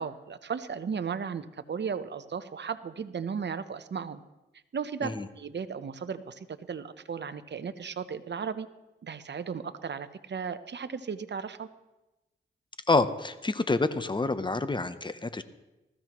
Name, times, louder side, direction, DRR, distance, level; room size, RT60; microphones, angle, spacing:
voice 1, 0.0-4.2 4.7-8.7 9.0-11.7, right 6 dB, 55° right, 11 dB, 0.9 m, -35 dB
voice 2, 12.9-15.4, left 3 dB, 20° left, 12 dB, 0.8 m, -27 dB
19.5 x 14.5 x 3.1 m, 1.0 s
cardioid pair, 65°, 21 cm